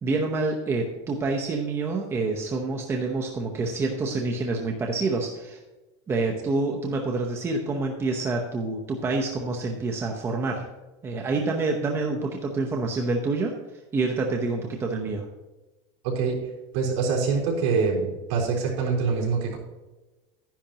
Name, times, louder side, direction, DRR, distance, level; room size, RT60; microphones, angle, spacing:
voice 1, 0.0-5.6 6.1-10.6 11.0-13.5 13.9-15.3, right 3 dB, 15° right, 1 dB, 0.8 m, -27 dB
voice 2, 16.0-16.4 16.7-19.6, right 5 dB, 65° right, -2 dB, 3.7 m, -25 dB
12.0 x 10.5 x 2.9 m, 1.1 s
supercardioid pair, 165°, 15 cm